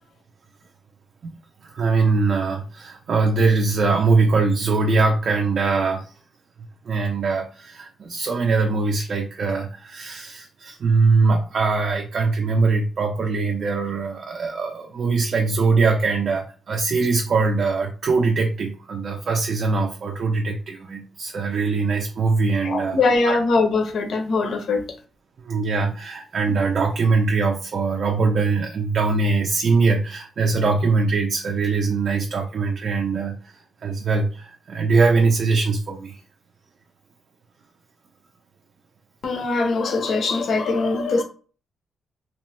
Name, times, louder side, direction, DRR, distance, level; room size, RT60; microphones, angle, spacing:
voice 1, 1.6-6.1 6.8-23.0 23.3-23.4 25.4-36.2, right 4 dB, 50° right, 0.4 m, -22 dB
voice 2, 22.6-24.8 26.5-26.6 39.2-41.2, left 3 dB, 55° left, 0.6 m, -22 dB
2.9 x 2.1 x 3.0 m
wide cardioid pair, 140°, 0 cm